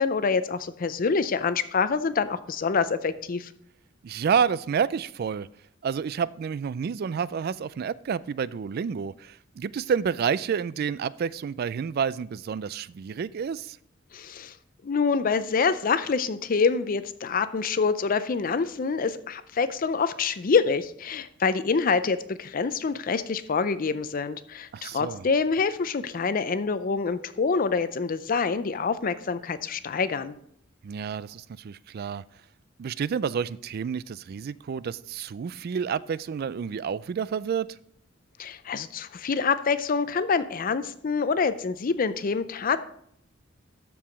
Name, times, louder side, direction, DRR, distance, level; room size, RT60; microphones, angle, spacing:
voice 1, 0.0-3.5 14.1-14.5 14.8-30.3 38.4-42.8, left 5 dB, 45° left, 13 dB, 0.5 m, -26 dB
voice 2, 4.0-5.5 5.8-13.8 24.7-25.3 30.8-32.2 32.8-37.7, right 7 dB, 50° right, 19 dB, 0.3 m, -29 dB
13.0 x 4.7 x 5.1 m, 0.68 s
head